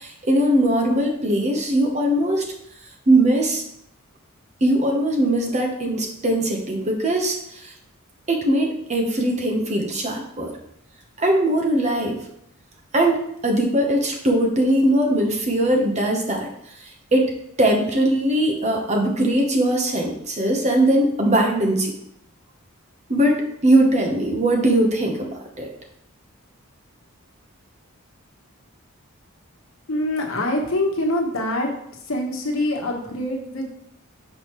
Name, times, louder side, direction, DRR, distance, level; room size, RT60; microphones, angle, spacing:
voice 1, 0.0-2.5 3.1-3.6 4.6-7.7 8.3-10.5 11.2-12.2 12.9-16.5 17.1-17.3 17.6-21.9 23.1-25.3 25.6-25.7, right 1 dB, 35° right, 1 dB, 1.0 m, -20 dB
voice 2, 29.9-31.7 32.1-33.7, left 1 dB, 70° left, 0 dB, 1.2 m, -24 dB
6.0 x 5.4 x 3.1 m, 0.73 s
head